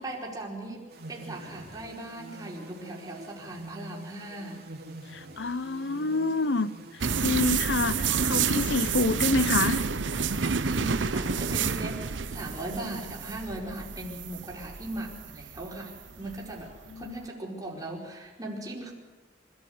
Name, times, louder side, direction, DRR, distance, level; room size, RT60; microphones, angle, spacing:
voice 1, 0.0-4.7 8.9-9.0 10.3-18.9, right 1 dB, 20° right, -3 dB, 4.8 m, -38 dB
sound 1, 0.9-12.8, right 1 dB, 60° right, 2.7 m, -46 dB
voice 2, 5.1-6.7 7.2-9.9 16.9-17.1, left 3 dB, 75° left, 15 dB, 0.8 m, -27 dB
sound 2, 7.0-17.2, right 6 dB, 85° right, 0.8 m, -29 dB
25.5 x 14.0 x 8.0 m, 1.3 s
head